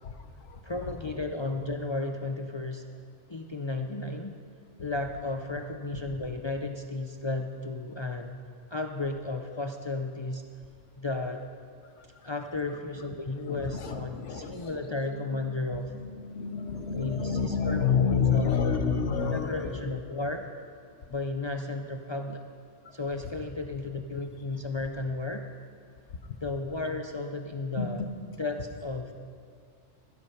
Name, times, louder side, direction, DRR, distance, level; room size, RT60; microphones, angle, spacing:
voice 1, 0.0-0.6 5.9-6.0 12.2-12.3 13.5-15.5 15.9-19.8 27.7-28.1, left 6 dB, 85° left, 7 dB, 1.3 m, -29 dB
voice 2, 0.6-2.8 3.3-4.4 4.8-8.4 8.7-10.4 11.0-11.4 12.2-15.9 16.9-18.8 19.3-20.5 21.1-22.4 22.9-25.4 26.4-28.0 28.4-29.1, left 2 dB, 45° left, 4 dB, 0.4 m, -34 dB
15.5 x 8.3 x 5.7 m, 2.2 s
omnidirectional pair, 1.2 m